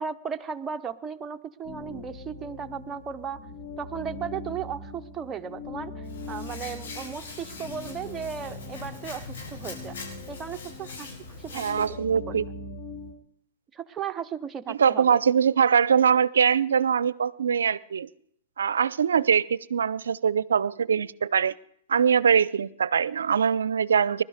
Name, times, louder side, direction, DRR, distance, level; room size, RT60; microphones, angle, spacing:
voice 1, 0.0-3.4 3.8-5.9 6.3-10.0 10.3-11.7 12.3-12.4 13.7-15.2, right 7 dB, 20° right, 0.8 m, -35 dB
sound 1, 1.6-13.1, left 3 dB, 50° left, 2.9 m, -41 dB
Hands, 6.0-11.9, left 3 dB, 75° left, 6.7 m, -42 dB
voice 2, 11.5-12.5 14.7-18.1 18.6-21.5 21.9-24.2, right 7 dB, 80° right, 0.5 m, -22 dB
20.5 x 12.5 x 5.0 m
hypercardioid pair, 120°, 0 cm